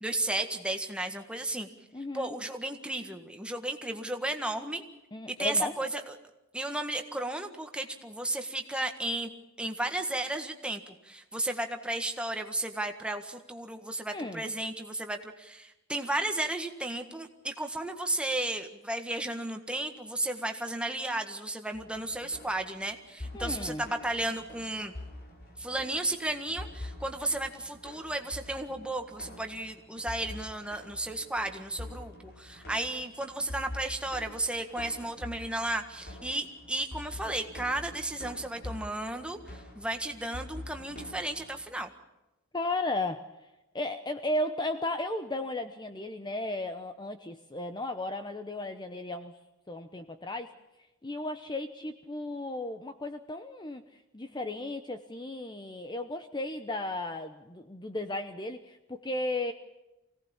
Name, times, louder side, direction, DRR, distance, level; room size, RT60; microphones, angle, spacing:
voice 1, 0.0-1.7 2.1-4.8 5.3-6.1 6.5-9.3 9.6-24.9 25.6-41.9, right 1 dB, 5° right, 5 dB, 1.7 m, -34 dB
voice 2, 1.9-2.3 5.1-5.9 14.1-14.4 23.3-23.8 42.5-43.5 43.7-49.4 49.7-50.5 51.0-59.5, left 2 dB, 20° left, 8 dB, 0.9 m, -35 dB
sound 1, 21.7-41.6, left 1 dB, 45° left, 3.8 m, -45 dB
25.0 x 18.0 x 7.2 m, 0.97 s
head